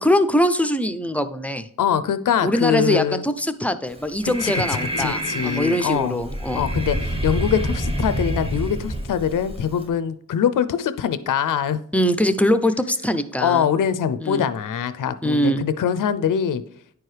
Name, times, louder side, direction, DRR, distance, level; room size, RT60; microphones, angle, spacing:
voice 1, 0.0-1.7 2.4-6.6 11.9-13.7 14.2-14.5 15.2-15.6, equal, 5° left, 10 dB, 0.4 m, -22 dB
voice 2, 1.8-3.2 4.4-4.5 5.0-6.2 6.5-11.8 13.4-16.6, left 8 dB, 65° left, 12 dB, 0.5 m, -23 dB
Breathing, 3.9-9.9, right 1 dB, 15° right, 0.9 m, -27 dB
9.8 x 4.6 x 3.2 m, 0.64 s
wide cardioid pair, 110°, 35 cm